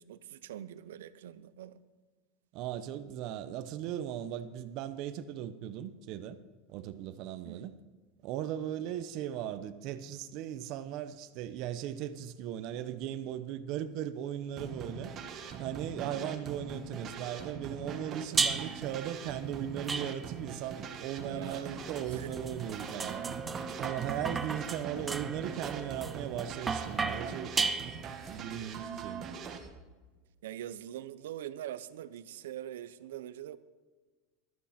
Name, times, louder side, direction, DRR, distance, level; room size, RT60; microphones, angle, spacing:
voice 1, 0.0-1.8 7.4-7.7 16.0-16.3 21.2-21.8 22.1-22.3 30.4-33.6, right 11 dB, 90° right, 0.7 m, -43 dB
voice 2, 2.5-6.4 6.7-7.7 8.2-15.1 15.6-23.3 23.8-27.5 28.0-29.3, right 11 dB, 55° right, 0.9 m, -38 dB
sound 1, 14.6-29.7, right 6 dB, 35° right, 1.6 m, -42 dB
sound 2, 18.4-18.9 19.9-20.5 21.5-28.3, right 4 dB, 15° right, 0.7 m, -35 dB
14.5 x 12.5 x 4.3 m
supercardioid pair, 135°, 0 cm